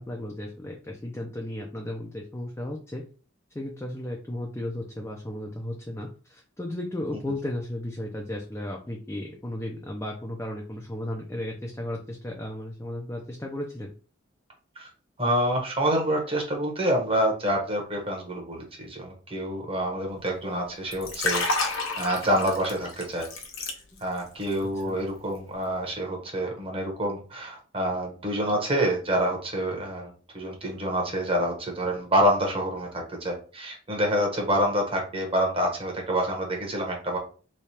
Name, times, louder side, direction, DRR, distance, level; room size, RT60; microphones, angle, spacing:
voice 1, 0.0-3.0 3.5-13.9 24.8-25.0, left 1 dB, 15° left, -1 dB, 0.5 m, -34 dB
voice 2, 15.2-23.3 24.0-37.2, equal, 30° right, 0 dB, 1.1 m, -27 dB
Liquid, 20.9-24.2 24.5-24.8, left 3 dB, 85° left, 0.9 m, -30 dB
3.2 x 2.3 x 4.2 m, 0.38 s
head